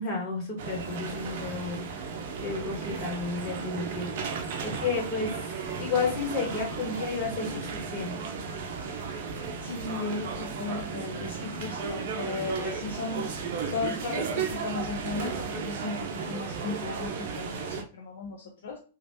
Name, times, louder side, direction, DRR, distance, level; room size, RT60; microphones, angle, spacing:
voice 1, 0.0-1.9 2.4-8.2, left 4 dB, 40° left, 0 dB, 1.4 m, -32 dB
sound 1, 0.6-17.8, right 5 dB, 55° right, 0.6 m, -34 dB
voice 2, 9.6-18.8, left 4 dB, 65° left, 1 dB, 0.5 m, -36 dB
3.0 x 2.4 x 2.8 m, 0.38 s
hypercardioid pair, 105°, 0 cm